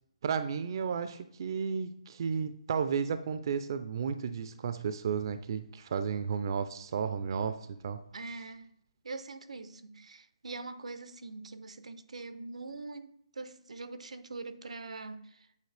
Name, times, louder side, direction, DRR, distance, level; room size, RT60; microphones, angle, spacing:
voice 1, 0.2-8.0, right 6 dB, 45° right, 0.4 m, -33 dB
voice 2, 8.1-8.7 9.0-15.5, right 3 dB, 90° right, 0.6 m, -43 dB
8.2 x 4.1 x 3.3 m
hypercardioid pair, 165°, 3 cm